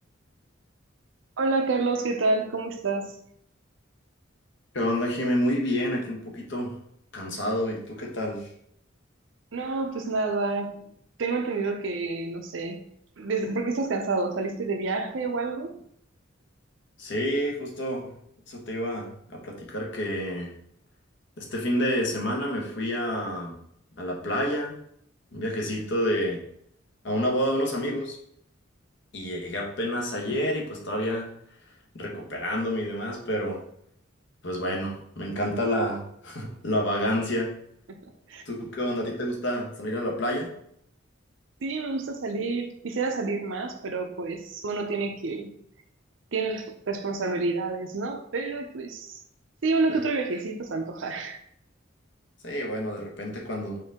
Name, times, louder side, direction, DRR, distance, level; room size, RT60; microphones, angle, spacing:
voice 1, 1.4-3.2 9.5-10.9 11.2-12.8 13.2-15.8 38.3-38.4 41.6-45.5 46.3-49.2 49.6-51.4, right 3 dB, 70° right, 6 dB, 0.6 m, -28 dB
voice 2, 4.7-6.8 7.1-8.5 17.0-18.1 18.5-20.5 21.4-23.6 24.0-24.8 25.3-26.4 27.0-28.2 29.1-31.3 31.9-33.6 34.4-37.5 38.5-40.5 49.9-50.0 52.4-53.8, equal, 65° left, 0 dB, 1.0 m, -29 dB
4.4 x 2.7 x 3.6 m, 0.69 s
head